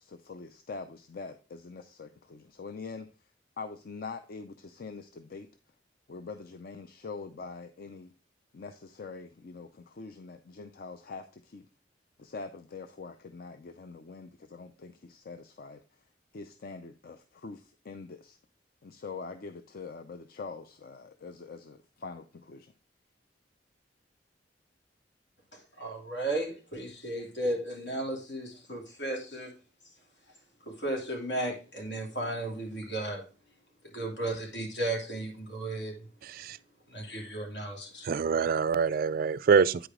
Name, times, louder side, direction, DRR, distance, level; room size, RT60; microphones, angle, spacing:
voice 1, 0.0-3.1 3.6-5.5 6.1-8.1 8.5-11.7 12.2-15.8 16.3-18.4 18.8-22.7, left 4 dB, 55° left, 0.5 m, -44 dB
voice 2, 25.5-29.5 30.6-33.2 33.9-36.1 36.9-38.1, right 1 dB, 80° left, 2.9 m, -34 dB
voice 3, 36.2-36.6 38.0-39.9, right 5 dB, 55° right, 0.3 m, -25 dB
9.0 x 5.0 x 3.6 m
head